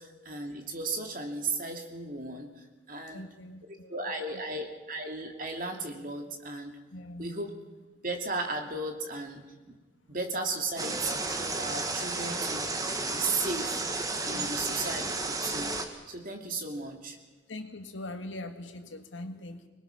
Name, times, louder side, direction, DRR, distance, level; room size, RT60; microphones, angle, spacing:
voice 1, 0.0-3.3 3.9-6.8 7.2-7.5 8.0-9.5 10.1-12.7 13.1-13.8 14.3-15.8 16.1-17.2, right 3 dB, 45° right, 3 dB, 2.8 m, -35 dB
voice 2, 3.1-4.4 6.9-7.3 14.3-14.6 17.5-19.7, left 1 dB, 85° left, 7 dB, 1.9 m, -42 dB
sound 1, 10.8-15.9, right 3 dB, 20° right, 1.8 m, -32 dB
25.5 x 21.0 x 6.0 m, 1.2 s
head